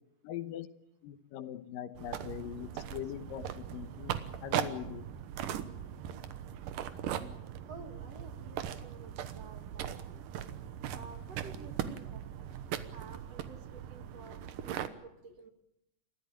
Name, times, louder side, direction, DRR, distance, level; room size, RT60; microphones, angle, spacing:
voice 1, 0.2-0.7 1.0-4.2 4.4-5.1, left 11 dB, 85° left, 2.7 m, -41 dB
sound 1, 2.0-14.9, right 10 dB, 75° right, 2.7 m, -39 dB
voice 2, 7.7-10.2 10.9-12.2 12.9-15.5, right 4 dB, 50° right, 2.8 m, -51 dB
29.5 x 13.5 x 8.9 m
omnidirectional pair, 3.9 m